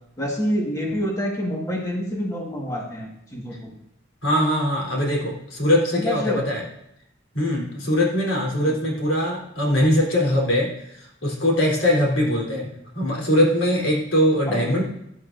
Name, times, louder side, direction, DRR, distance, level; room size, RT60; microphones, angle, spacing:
voice 1, 0.2-3.7 5.9-6.4 8.6-8.7 12.5-12.7 14.5-14.7, equal, 15° left, -1 dB, 1.8 m, -27 dB
voice 2, 4.2-6.7 7.3-14.8, left 1 dB, 90° left, -2 dB, 3.7 m, -22 dB
16.5 x 10.5 x 2.7 m, 0.78 s
head